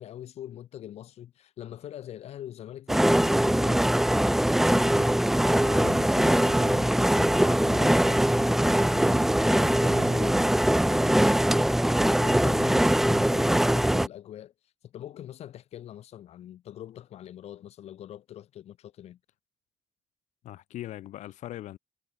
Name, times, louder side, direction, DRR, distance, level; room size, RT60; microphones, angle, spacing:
voice 1, 0.0-4.2 4.7-10.5 12.0-14.5 14.8-19.2, left 11 dB, 60° left, 3.7 m, -43 dB
sound 1, 2.9-14.1, right 1 dB, 5° right, 0.7 m, -22 dB
voice 2, 9.5-9.8 20.4-21.8, left 14 dB, 85° left, 5.1 m, -40 dB
cardioid pair, 175°, 12 cm